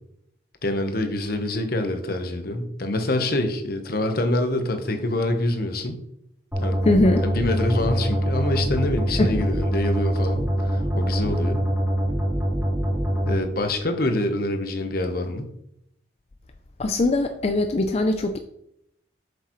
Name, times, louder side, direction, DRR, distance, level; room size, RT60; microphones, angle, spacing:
voice 1, 0.6-6.0 6.6-6.8 7.2-11.7 13.3-15.5, left 1 dB, 55° left, 6 dB, 1.0 m, -26 dB
sound 1, 6.5-13.4, equal, 10° right, 2.9 m, -24 dB
voice 2, 6.8-7.2 9.2-9.4 16.8-18.4, left 2 dB, 35° left, 6 dB, 0.4 m, -21 dB
7.9 x 6.7 x 3.1 m, 0.76 s
head